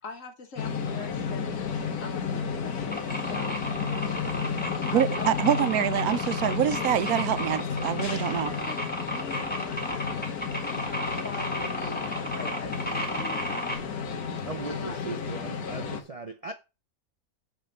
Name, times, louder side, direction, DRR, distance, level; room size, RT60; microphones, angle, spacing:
voice 1, 0.0-3.0 3.3-3.6 4.9-5.3 5.5-5.8 8.4-8.8 9.1-10.2 10.9-13.6 14.7-15.0, left 3 dB, 60° left, 1.8 m, -42 dB
sound 1, 0.6-16.0, left 6 dB, 90° left, 1.7 m, -32 dB
sound 2, 2.9-13.8, equal, 5° left, 1.6 m, -33 dB
voice 2, 4.9-8.5, right 10 dB, 85° right, 1.1 m, -26 dB
voice 3, 14.4-16.5, right 3 dB, 40° right, 0.5 m, -38 dB
7.5 x 4.0 x 6.6 m
omnidirectional pair, 1.5 m